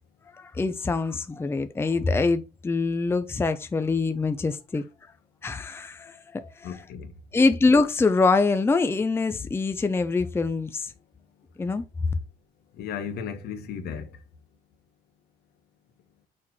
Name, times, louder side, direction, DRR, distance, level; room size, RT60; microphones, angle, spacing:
voice 1, 0.3-4.8 5.4-6.7 7.3-10.9 11.6-11.8, left 3 dB, 15° left, 0.5 m, -24 dB
voice 2, 6.6-7.2 12.7-14.2, left 7 dB, 70° left, 1.3 m, -35 dB
6.3 x 4.4 x 4.2 m
cardioid pair, 110°, 17 cm